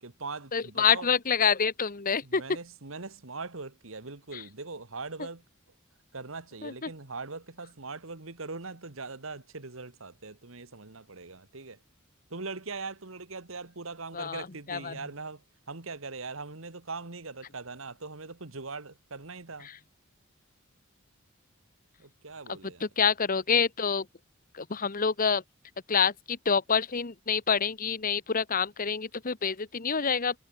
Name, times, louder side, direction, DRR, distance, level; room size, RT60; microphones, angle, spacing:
voice 1, 0.0-1.1 2.2-5.4 6.1-11.8 12.3-19.7 22.0-22.9, right 3 dB, 65° right, 1.8 m, -41 dB
voice 2, 0.5-2.4 6.6-6.7 14.1-14.9 23.0-24.0 24.6-25.4 25.9-30.4, left 6 dB, 40° left, 1.2 m, -27 dB
head